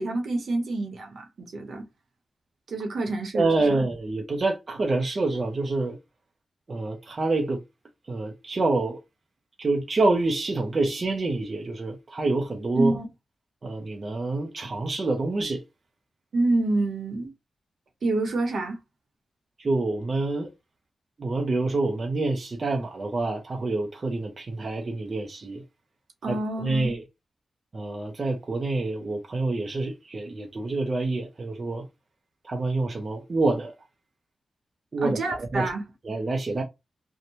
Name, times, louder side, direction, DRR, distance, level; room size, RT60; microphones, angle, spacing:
voice 1, 0.0-1.9 2.7-3.8 12.8-13.1 16.3-17.3 18.0-18.8 26.2-27.0 35.0-35.8, right 2 dB, 70° right, 0.9 m, -27 dB
voice 2, 3.3-6.0 6.7-7.6 8.1-9.0 9.6-13.0 13.6-15.6 19.6-20.5 21.2-25.6 26.3-27.0 27.7-31.9 32.4-33.7 34.9-35.7 36.0-36.6, right 2 dB, 40° right, 0.5 m, -27 dB
2.7 x 2.1 x 2.9 m
wide cardioid pair, 155°, 0 cm